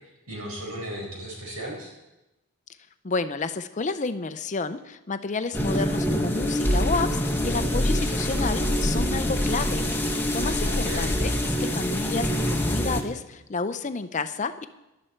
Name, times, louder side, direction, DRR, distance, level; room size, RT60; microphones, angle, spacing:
voice 1, 0.3-1.9 10.7-11.1, right 1 dB, 75° right, -1 dB, 5.0 m, -35 dB
voice 2, 3.0-11.3 11.6-14.7, left 4 dB, 35° left, 11 dB, 0.6 m, -30 dB
sound 1, 5.5-13.0, equal, 10° left, 1.0 m, -25 dB
16.0 x 11.5 x 4.5 m, 0.98 s
head